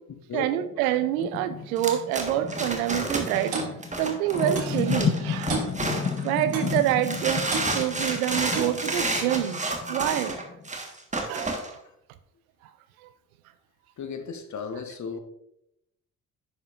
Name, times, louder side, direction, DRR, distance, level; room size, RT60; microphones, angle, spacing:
voice 1, 0.3-3.6 4.0-5.7 6.2-7.5 7.7-9.6 9.9-10.3 11.3-11.5 13.0-13.1, right 12 dB, 70° right, 0.6 m, -27 dB
sound 1, 0.6-10.7, left 7 dB, 20° left, 0.3 m, -33 dB
sound 2, 1.8-6.3 6.7-11.7, right 2 dB, 15° right, 1.4 m, -30 dB
Clock, 3.5-3.7 4.6-4.8 5.5-5.7 6.5-6.8 7.5-7.7 8.5-8.8, right 4 dB, 50° right, 1.8 m, -31 dB
voice 2, 14.0-15.2, left 5 dB, 40° left, 1.1 m, -34 dB
10.5 x 5.4 x 2.5 m
figure-of-eight pair, 45°, 44 cm